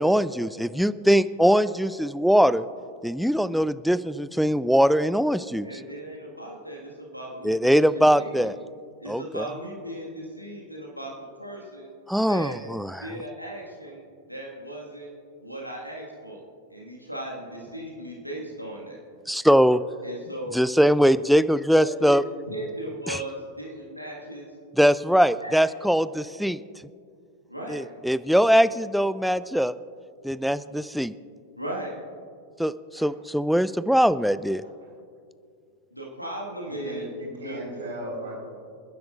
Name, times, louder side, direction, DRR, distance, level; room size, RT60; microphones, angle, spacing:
voice 1, 0.0-2.6 3.0-5.7 7.4-8.6 9.1-9.5 12.1-13.1 19.3-19.8 20.5-22.2 23.1-23.2 24.7-26.6 27.7-29.7 30.2-31.1 32.6-34.6, equal, ahead, 15 dB, 0.3 m, -21 dB
voice 2, 5.6-7.8 8.1-8.5 9.0-11.1 11.4-11.9 12.3-12.6 13.0-14.0 14.3-15.1 15.4-16.4 16.7-19.0 20.0-20.5 21.8-22.1 22.5-24.5 25.4-25.6 27.5-27.8 31.6-31.9 35.9-37.1 37.4-37.8, right 1 dB, 90° right, -3 dB, 1.7 m, -37 dB
voice 3, 36.6-38.3, right 1 dB, 65° right, -2 dB, 3.9 m, -37 dB
28.0 x 10.5 x 2.5 m, 2.3 s
figure-of-eight pair, 90°, 0 cm